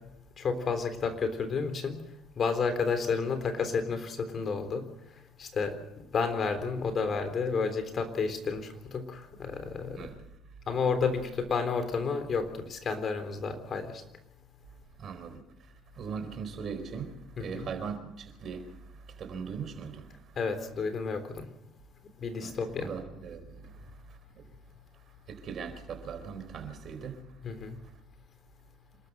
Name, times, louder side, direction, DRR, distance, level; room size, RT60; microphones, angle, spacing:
voice 1, 0.4-2.0 2.3-4.9 5.4-10.1 10.7-14.0 17.4-17.7 20.4-21.5 22.2-22.9 27.4-27.8, left 5 dB, 45° left, 3.6 m, -31 dB
voice 2, 15.0-20.3 22.4-24.4 25.3-27.2, right 6 dB, 50° right, 4.5 m, -40 dB
27.0 x 13.0 x 7.8 m
hypercardioid pair, 65°, 0 cm